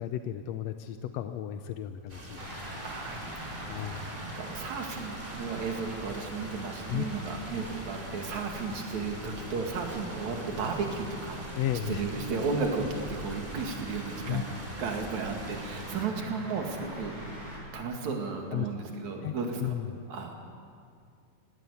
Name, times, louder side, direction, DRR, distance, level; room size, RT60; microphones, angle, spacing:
voice 1, 0.0-2.5 3.7-4.0 6.9-7.0 11.5-12.0 14.3-14.4 18.5-18.7 19.2-19.3 19.6-19.9, left 11 dB, 75° left, 8 dB, 1.6 m, -33 dB
sound 1, 2.1-16.1, right 1 dB, 15° right, 2.0 m, -45 dB
sound 2, 2.4-17.6, equal, 35° right, 7.5 m, -43 dB
voice 2, 2.8-11.4 11.9-17.2 17.7-19.7 20.1-20.3, right 4 dB, 65° right, 2 dB, 3.5 m, -34 dB
18.5 x 18.5 x 8.4 m, 2.2 s
omnidirectional pair, 3.7 m